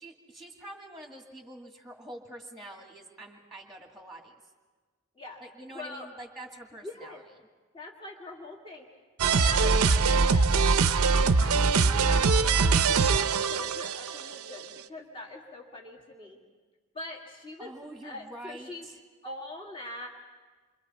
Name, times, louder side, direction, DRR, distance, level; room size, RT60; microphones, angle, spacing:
voice 1, 0.0-4.3 5.4-7.2 17.6-19.0, right 1 dB, ahead, 1 dB, 2.0 m, -46 dB
voice 2, 5.7-6.1 6.8-7.2 7.7-8.9 9.3-16.4 16.9-17.7 18.0-18.9 19.2-20.1, left 2 dB, 25° left, -1 dB, 2.2 m, -42 dB
sound 1, 9.2-14.3, right 4 dB, 90° right, 0.6 m, -23 dB
28.5 x 25.0 x 4.2 m, 1.4 s
head